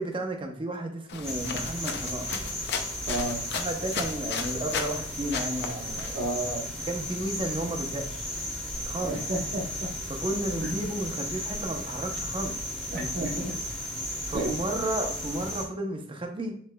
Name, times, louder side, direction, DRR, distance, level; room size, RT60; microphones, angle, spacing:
voice 1, 0.0-2.4 3.5-6.2 6.9-8.2 8.8-9.2 10.1-12.6 12.9-13.5 14.2-16.6, right 1 dB, 25° right, 3 dB, 0.7 m, -33 dB
sound 1, 1.1-5.0 5.3-6.1, left 5 dB, 55° left, 0.5 m, -35 dB
sound 2, 1.2-15.6, equal, 5° left, 1.2 m, -35 dB
voice 2, 3.1-3.4 6.1-7.0 9.0-9.9 10.4-10.7 12.9-13.5 14.3-14.5, right 1 dB, 55° right, 1 dB, 1.1 m, -32 dB
7.2 x 3.3 x 2.2 m, 0.62 s
head